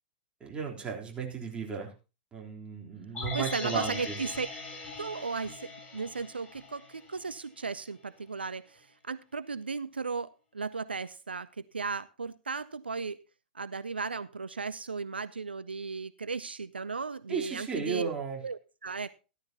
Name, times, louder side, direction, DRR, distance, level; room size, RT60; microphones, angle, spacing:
voice 1, 0.4-1.9 2.3-4.2 17.3-18.4, right 6 dB, 20° right, -1 dB, 3.6 m, -35 dB
sound 1, 3.1-7.3 7.7-7.8, left 3 dB, 20° left, 7.4 m, -40 dB
voice 2, 3.3-4.5 5.0-11.5 11.7-13.2 13.5-18.1 18.4-19.2, right 4 dB, 85° right, 17 dB, 0.5 m, -36 dB
13.5 x 13.5 x 2.9 m, 0.32 s
figure-of-eight pair, 100°, 5 cm